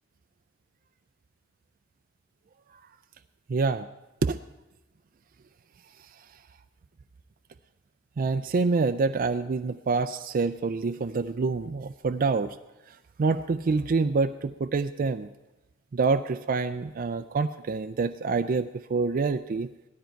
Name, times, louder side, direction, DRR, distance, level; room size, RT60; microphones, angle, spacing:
voice 1, 3.5-3.9 4.2-4.4 8.2-12.6 13.2-15.3 15.9-19.7, right 4 dB, 45° right, 9 dB, 0.4 m, -26 dB
17.0 x 13.0 x 4.5 m, 1.0 s
head